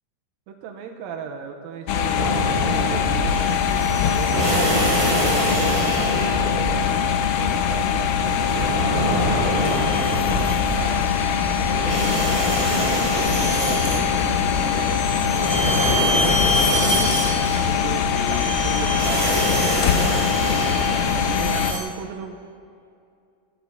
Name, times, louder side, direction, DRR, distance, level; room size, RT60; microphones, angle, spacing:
voice 1, 0.5-7.1 7.4-11.9 12.3-22.4, right 6 dB, 85° right, 3 dB, 2.5 m, -36 dB
sound 1, 1.9-21.7, left 8 dB, 85° left, 1.5 m, -23 dB
sound 2, 2.1-21.7, right 1 dB, 20° right, 1.4 m, -26 dB
sound 3, 3.3-5.6 7.0-7.4 8.2-21.8, equal, 35° left, 0.3 m, -30 dB
14.0 x 13.0 x 3.6 m, 2.3 s
omnidirectional pair, 4.0 m